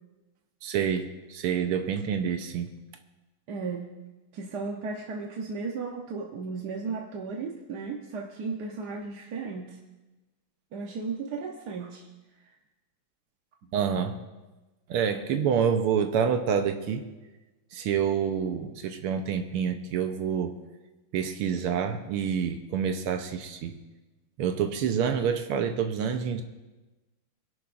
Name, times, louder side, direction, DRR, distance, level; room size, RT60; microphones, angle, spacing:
voice 1, 0.6-2.7 13.7-14.2 14.9-17.1 17.7-20.6 21.1-23.8 24.4-26.4, right 7 dB, 90° right, 6 dB, 1.8 m, -27 dB
voice 2, 3.5-3.9 4.3-9.8 10.7-12.1 12.4-12.6, right 4 dB, 55° right, 0 dB, 1.3 m, -35 dB
23.5 x 12.0 x 2.6 m, 1.1 s
omnidirectional pair, 2.4 m